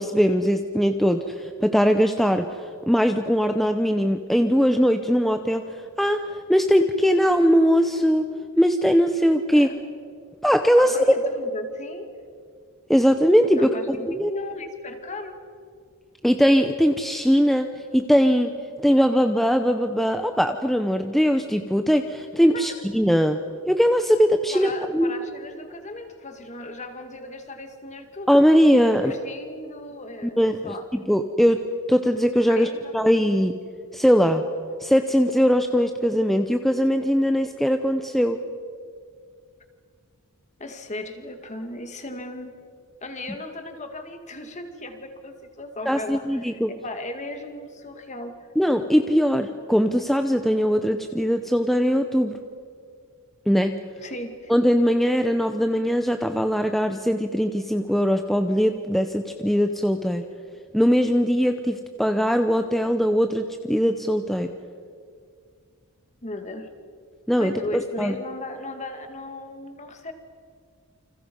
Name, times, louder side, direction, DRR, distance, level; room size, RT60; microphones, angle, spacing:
voice 1, 0.0-8.3 8.6-9.7 10.4-11.0 12.9-14.3 16.2-18.5 18.8-23.4 23.7-25.1 28.3-29.1 30.4-31.6 31.9-33.6 33.9-34.4 34.8-38.4 45.9-46.7 48.6-52.4 53.5-53.8 54.5-60.2 60.7-64.5 67.3-68.1, equal, ahead, 6 dB, 0.7 m, -21 dB
voice 2, 10.8-12.1 13.6-15.4 22.5-22.8 24.5-28.3 28.9-30.9 32.5-33.0 40.6-42.5 43.0-48.3 54.0-54.5 66.2-66.7 67.4-70.1, left 2 dB, 35° left, 6 dB, 2.3 m, -36 dB
29.0 x 26.5 x 5.5 m, 2.1 s
head